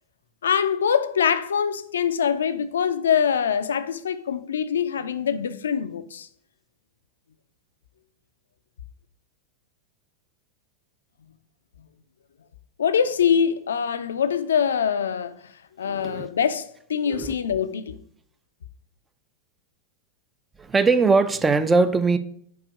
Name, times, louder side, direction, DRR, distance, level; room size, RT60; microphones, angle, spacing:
voice 1, 0.4-6.3 12.8-15.5 15.8-18.0, left 7 dB, 65° left, 0.3 m, -24 dB
voice 2, 15.8-16.3 17.0-17.3 20.6-22.2, right 4 dB, 15° right, 0.4 m, -20 dB
5.1 x 4.7 x 4.6 m
figure-of-eight pair, 90°, 0 cm